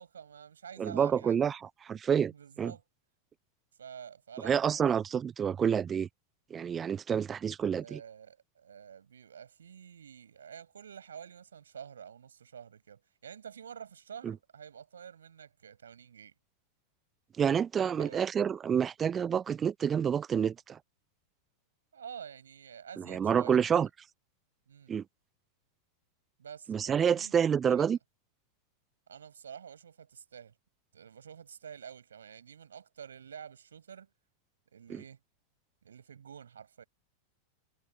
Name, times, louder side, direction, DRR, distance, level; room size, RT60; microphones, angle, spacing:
voice 1, 0.0-1.4 2.3-2.8 3.8-5.0 7.7-16.3 18.0-18.2 21.9-23.8 24.7-24.9 26.4-27.3 27.7-28.0 29.1-30.5 30.9-34.1 34.7-35.2 35.8-36.8, right 7 dB, 70° right, 7.9 m, -48 dB
voice 2, 0.8-2.3 2.6-2.7 4.4-6.1 6.5-8.0 14.2-14.3 17.4-20.8 23.0-23.9 24.9-25.0 26.7-28.0 34.9-35.0, right 7 dB, 20° right, 0.3 m, -28 dB
figure-of-eight pair, 90°, 0 cm